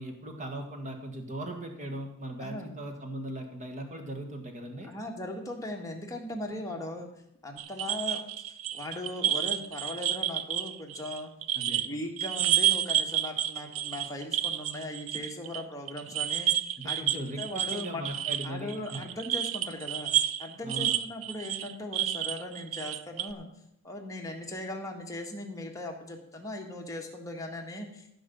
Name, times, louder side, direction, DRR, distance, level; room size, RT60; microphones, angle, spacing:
voice 1, 0.0-4.9 11.6-11.8 16.8-19.0 20.6-21.0, right 1 dB, 35° right, 4 dB, 1.8 m, -39 dB
voice 2, 2.4-2.8 4.8-7.1 7.4-11.3 11.6-16.5 16.8-17.0 17.4-18.1 18.4-20.1 20.4-23.5 23.8-28.2, left 1 dB, 15° left, 1 dB, 1.6 m, -39 dB
sound 1, 7.6-11.9 12.2-15.6 15.9-23.3, right 11 dB, 65° right, 0.5 m, -30 dB
15.0 x 5.1 x 6.9 m, 0.80 s
head